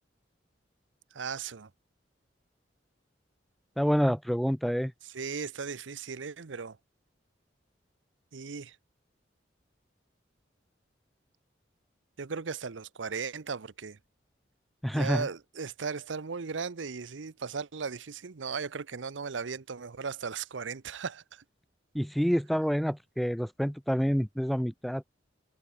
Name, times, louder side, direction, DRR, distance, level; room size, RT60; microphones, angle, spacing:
voice 1, 1.1-1.7 5.1-6.8 8.3-8.8 12.2-14.0 14.9-21.4, right 5 dB, 90° right, 0.8 m, -37 dB
voice 2, 3.8-4.9 14.8-15.3 21.9-25.0, equal, ahead, 0.3 m, -28 dB
head